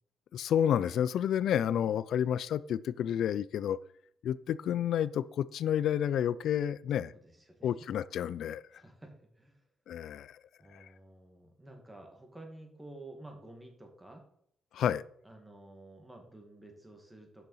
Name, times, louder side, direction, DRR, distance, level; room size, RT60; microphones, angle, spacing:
voice 1, 0.3-3.8 4.2-7.1 7.6-8.7 9.9-10.4 10.7-10.9 14.7-15.0, left 9 dB, 70° left, 0.3 m, -30 dB
voice 2, 7.1-7.7 8.7-9.6 10.6-14.2 15.2-17.5, right 2 dB, 10° right, 2.1 m, -51 dB
6.8 x 6.2 x 5.6 m
cardioid pair, 90°, 0 cm